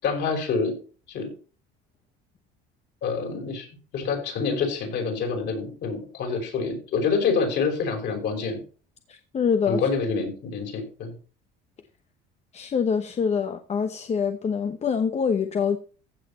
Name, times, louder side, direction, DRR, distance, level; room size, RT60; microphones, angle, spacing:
voice 1, 0.0-0.7 1.1-1.3 3.0-3.7 3.9-8.6 9.7-11.1, left 5 dB, 55° left, 5.7 m, -27 dB
voice 2, 9.1-9.8 12.5-15.8, left 6 dB, 30° left, 1.0 m, -25 dB
15.0 x 6.7 x 4.3 m
cardioid pair, 110°, 21 cm